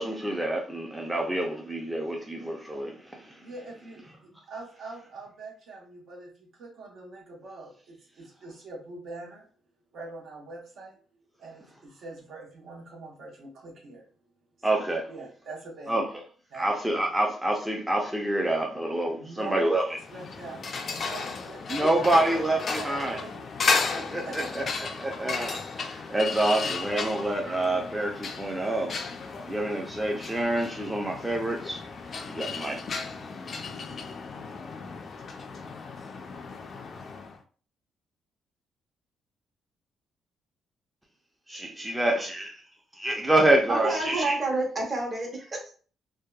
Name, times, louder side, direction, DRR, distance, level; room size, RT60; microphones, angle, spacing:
voice 1, 0.0-3.5 14.6-15.0 15.9-16.1 16.5-20.0 21.7-23.2 23.9-24.6 25.0-28.9 29.4-31.8 32.3-32.8 41.5-42.6 43.0-44.4, right 1 dB, 10° right, 0.5 m, -27 dB
voice 2, 3.4-9.5 9.9-11.0 11.4-14.1 14.6-16.2 16.5-16.8 19.1-19.8 20.1-23.5 24.2-24.7, right 3 dB, 70° right, 0.9 m, -43 dB
sound 1, 19.9-37.4, left 4 dB, 50° left, 0.4 m, -34 dB
voice 3, 43.7-45.7, right 2 dB, 35° right, 1.1 m, -29 dB
2.7 x 2.2 x 2.3 m
cardioid pair, 90°, 0 cm